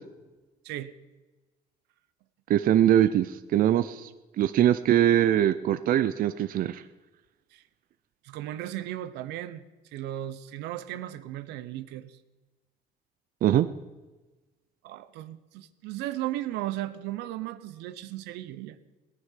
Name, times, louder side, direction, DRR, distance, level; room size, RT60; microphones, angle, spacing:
voice 1, 2.5-4.1 4.4-6.8 13.4-13.7, right 11 dB, 60° right, 12 dB, 0.6 m, -22 dB
voice 2, 8.2-9.6 9.9-12.1 14.8-18.8, right 14 dB, 90° right, 12 dB, 0.9 m, -36 dB
18.5 x 9.4 x 5.8 m, 1.2 s
cardioid pair, 110°, 17 cm